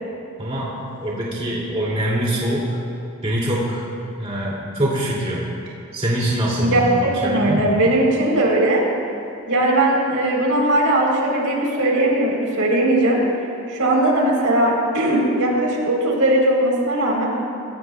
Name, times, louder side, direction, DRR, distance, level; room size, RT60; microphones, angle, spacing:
voice 1, 0.4-2.8 3.2-3.8 4.2-5.5 5.9-7.8, right 1 dB, 25° right, -6 dB, 2.7 m, -24 dB
voice 2, 6.6-8.8 9.5-13.2 13.7-17.3, right 1 dB, 75° right, -2 dB, 3.8 m, -19 dB
24.5 x 17.0 x 2.4 m, 2.5 s
head